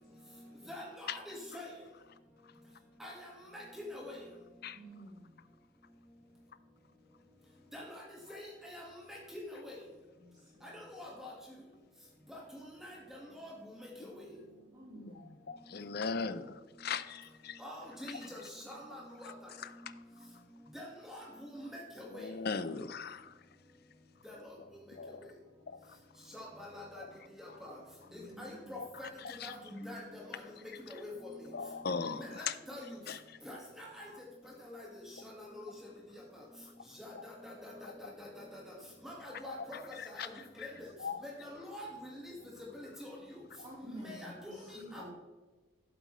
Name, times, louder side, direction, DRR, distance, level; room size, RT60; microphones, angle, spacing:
voice 1, 0.7-1.7 3.0-3.1 3.5-4.2 7.7-8.0 8.3-8.8 9.1-9.4 10.7-11.3 12.8-13.5 14.0-14.1 17.6-18.4 18.7-19.3 20.7-21.2 21.6-21.7 22.0-22.3 24.3-24.4 26.3-27.0 27.4-27.7 28.4-29.1 29.4-29.5 29.8-30.2 30.9-31.1 32.2-32.8 33.5-34.0 34.7-34.8 35.3-35.7 37.2-38.6 39.0-39.8 40.1-40.3 40.6-40.7 41.4-42.3 42.7-43.1 44.0-45.1, left 1 dB, ahead, -3 dB, 1.6 m, -46 dB
voice 2, 4.7-5.3 10.2-10.8 14.7-15.4 28.1-28.7 40.7-41.2 43.6-45.1, equal, 20° right, -7 dB, 3.4 m, -51 dB
voice 3, 15.5-16.4 16.8-17.6 22.1-23.3 25.0-25.2 25.7-25.8 28.8-28.9 29.2-29.5 31.5-32.5 33.1-33.4 37.1-37.2 39.5-39.6 40.0-40.3 40.6-40.7 41.0-41.2, left 5 dB, 50° left, 12 dB, 0.5 m, -38 dB
12.0 x 7.8 x 3.1 m, 1.2 s
head